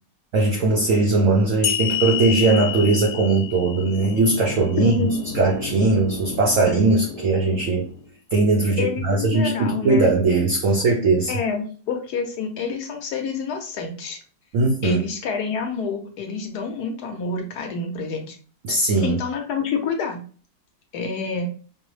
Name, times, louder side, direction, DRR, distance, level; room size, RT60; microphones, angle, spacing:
voice 1, 0.3-5.1 5.3-7.9 8.3-11.3 14.5-15.0 18.6-19.2, right 3 dB, 80° right, 1 dB, 0.7 m, -19 dB
sound 1, 1.6-5.0, left 12 dB, 90° left, 1.4 m, -28 dB
sound 2, 3.2-8.1, left 4 dB, 40° left, 1.2 m, -34 dB
voice 2, 4.8-5.2 8.8-10.1 11.3-14.2 14.8-18.4 19.0-20.2 20.9-21.5, left 5 dB, 70° left, 4 dB, 1.1 m, -28 dB
5.2 x 2.0 x 3.1 m, 0.41 s
omnidirectional pair, 2.0 m